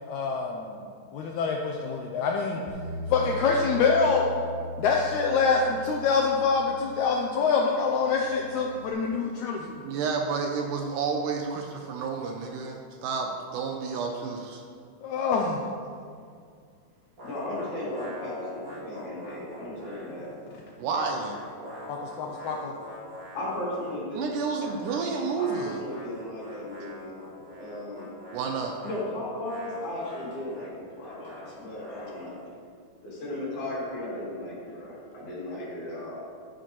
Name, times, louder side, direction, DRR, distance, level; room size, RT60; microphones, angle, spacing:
voice 1, 0.1-0.8 1.1-2.6 3.1-4.2 4.8-9.8 15.0-15.6 21.9-22.7, left 5 dB, 85° left, 0 dB, 1.7 m, -25 dB
Bass guitar, 2.7-8.9, left 2 dB, 20° left, 1.6 m, -40 dB
voice 2, 9.8-14.6 20.8-21.4 24.2-25.8 28.3-28.8, right 5 dB, 75° right, 2 dB, 2.1 m, -30 dB
voice 3, 17.2-20.3 23.3-24.3 25.4-27.1 27.6-28.1 28.8-32.3 33.0-36.2, left 1 dB, 60° left, -7 dB, 4.2 m, -36 dB
sound 1, 17.2-20.5 20.7-24.0 24.5-32.5, equal, 35° right, 2.8 m, -44 dB
11.5 x 9.7 x 3.1 m, 2.2 s
omnidirectional pair, 4.1 m